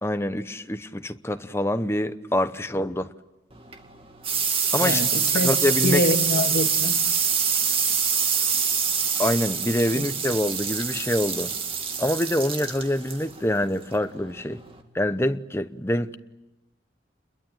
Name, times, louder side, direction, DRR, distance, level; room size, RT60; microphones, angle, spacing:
voice 1, 0.0-3.1 4.7-5.0 5.3-6.0 9.2-11.5 12.0-14.6 14.9-16.2, left 1 dB, 15° left, 0.9 m, -25 dB
sound 1, 3.5-14.8, right 6 dB, 30° right, 2.5 m, -26 dB
voice 2, 4.8-5.5 5.8-7.0 10.0-10.1, left 1 dB, 55° left, 1.9 m, -25 dB
29.0 x 22.0 x 9.0 m
head